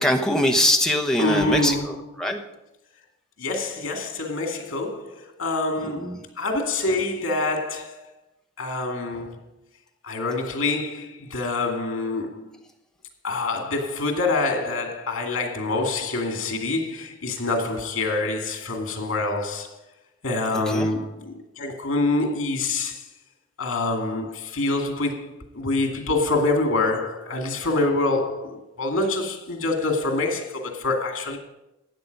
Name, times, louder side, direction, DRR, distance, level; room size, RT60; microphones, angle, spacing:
voice 1, 0.0-2.4 6.0-6.2 20.7-20.9, left 1 dB, 5° left, 0.9 m, -23 dB
voice 2, 1.2-1.9 3.4-8.1 8.6-9.4 10.0-12.5 13.2-19.7 20.2-23.0 23.6-31.4, left 2 dB, 85° left, 2.3 m, -26 dB
13.0 x 8.6 x 5.3 m
head